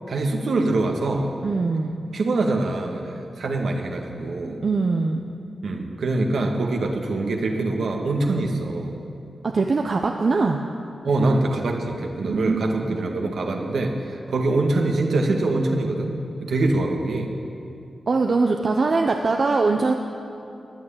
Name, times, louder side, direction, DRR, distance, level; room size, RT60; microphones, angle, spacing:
voice 1, 0.1-1.3 2.1-3.0 3.4-4.6 5.6-8.9 11.0-16.1 16.4-17.3, right 2 dB, 80° right, 1 dB, 1.8 m, -24 dB
voice 2, 1.4-2.0 4.6-5.2 9.4-10.6 12.2-12.6 12.9-13.0 18.1-19.9, right 3 dB, 60° right, 2 dB, 0.9 m, -22 dB
15.0 x 9.8 x 8.7 m, 2.7 s
cardioid pair, 45°, 0 cm